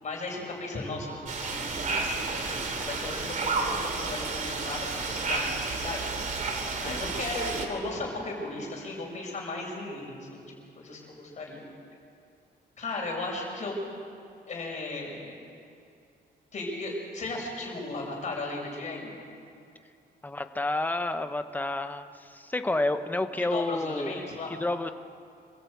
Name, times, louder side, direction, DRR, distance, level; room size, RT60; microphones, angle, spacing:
voice 1, 0.0-1.8 2.3-6.1 6.8-10.4 10.8-11.6 12.8-13.8 14.5-15.4 16.5-19.1 22.7-22.8 23.4-24.6, left 2 dB, 40° left, -1 dB, 5.8 m, -36 dB
sound 1, 1.3-7.7, right 3 dB, 45° right, 2.5 m, -31 dB
voice 2, 20.2-24.1 24.6-24.9, left 2 dB, 10° left, 9 dB, 0.8 m, -30 dB
26.0 x 15.0 x 8.4 m, 2.5 s
wide cardioid pair, 160°, 18 cm